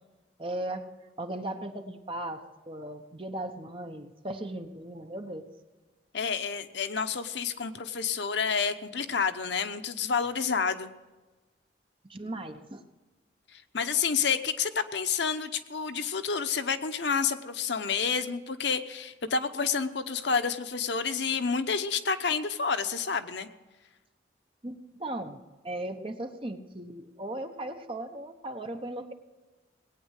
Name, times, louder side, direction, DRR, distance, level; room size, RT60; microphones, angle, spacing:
voice 1, 0.4-0.9 1.2-5.4 12.1-12.8 24.6-29.1, right 1 dB, 30° right, 6 dB, 1.0 m, -37 dB
voice 2, 6.1-10.9 13.5-23.5, left 6 dB, 70° left, 9 dB, 0.8 m, -29 dB
19.0 x 9.0 x 6.5 m, 1.2 s
head